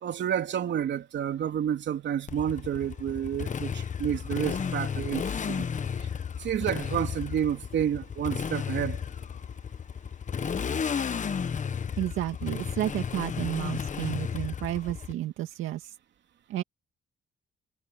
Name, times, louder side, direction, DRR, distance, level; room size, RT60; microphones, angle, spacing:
voice 1, 0.0-5.7 6.0-6.1 6.4-9.0, right 9 dB, 65° right, 3.3 m, -30 dB
Motorcycle, 2.3-15.1, left 6 dB, 40° left, 1.2 m, -33 dB
voice 2, 12.0-16.0 16.5-16.6, right 13 dB, 90° right, 2.1 m, -31 dB
cardioid pair, 90°, 20 cm